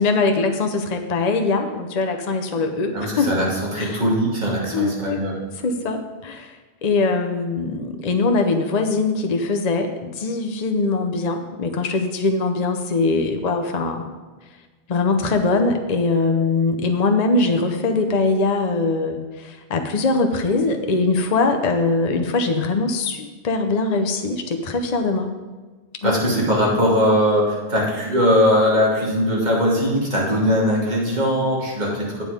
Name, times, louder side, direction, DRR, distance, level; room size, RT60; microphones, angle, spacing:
voice 1, 0.0-3.3 3.8-4.0 4.7-5.2 5.6-6.6 6.8-14.1 14.9-25.3 26.0-26.1, left 3 dB, 40° left, 5 dB, 0.8 m, -22 dB
voice 2, 2.9-5.3 26.0-32.2, equal, 40° right, -4 dB, 2.6 m, -20 dB
9.3 x 7.6 x 5.0 m, 1.3 s
omnidirectional pair, 1.1 m